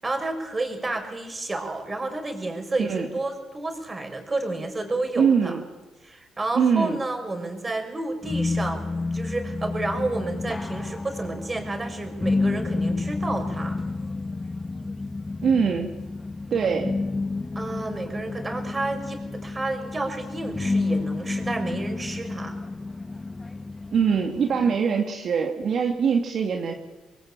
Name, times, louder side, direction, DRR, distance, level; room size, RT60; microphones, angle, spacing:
voice 1, 0.0-5.6 6.0-13.7 17.5-22.5, right 2 dB, 25° right, 5 dB, 6.1 m, -30 dB
voice 2, 5.2-5.6 6.5-7.0 15.4-15.9 16.5-16.9 23.9-26.7, right 6 dB, 60° right, 3 dB, 2.5 m, -22 dB
sound 1, 8.2-24.8, left 3 dB, 20° left, 1.1 m, -30 dB
27.0 x 20.5 x 9.1 m, 1.2 s
cardioid pair, 90°, 0 cm